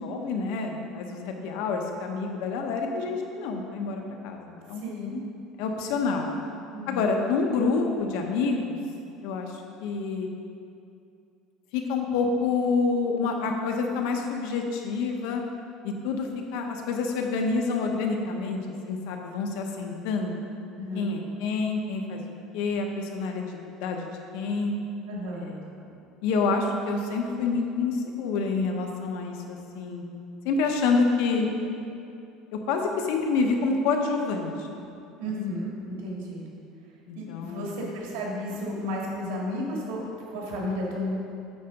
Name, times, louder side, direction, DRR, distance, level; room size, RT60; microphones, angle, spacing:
voice 1, 0.0-4.8 5.6-6.3 6.9-8.8 9.2-10.3 11.7-15.4 15.8-20.4 20.9-22.2 22.5-24.1 24.3-24.8 25.3-25.9 26.2-30.0 30.4-31.5 32.7-34.8 37.1-37.7, left 4 dB, 75° left, 3 dB, 0.9 m, -28 dB
voice 2, 4.8-5.2 6.7-7.1 20.7-21.1 25.1-25.5 35.2-36.4 37.2-41.1, left 1 dB, 90° right, -3 dB, 2.0 m, -33 dB
8.9 x 4.0 x 5.8 m, 2.6 s
cardioid pair, 155°, 0 cm